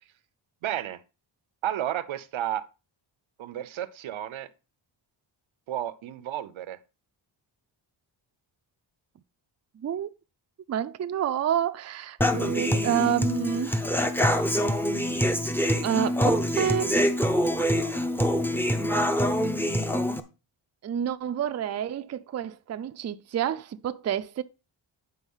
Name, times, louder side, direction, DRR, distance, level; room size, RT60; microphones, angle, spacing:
voice 1, 0.6-1.0 1.6-2.6 3.4-4.5 5.7-6.8, right 12 dB, 85° right, 0.8 m, -32 dB
voice 2, 9.7-10.1 10.7-13.8 15.8-17.0 20.8-24.4, right 9 dB, 35° right, 0.4 m, -29 dB
Human voice / Acoustic guitar, 12.2-20.2, equal, 5° left, 0.6 m, -25 dB
9.8 x 4.0 x 5.5 m
wide cardioid pair, 140°, 46 cm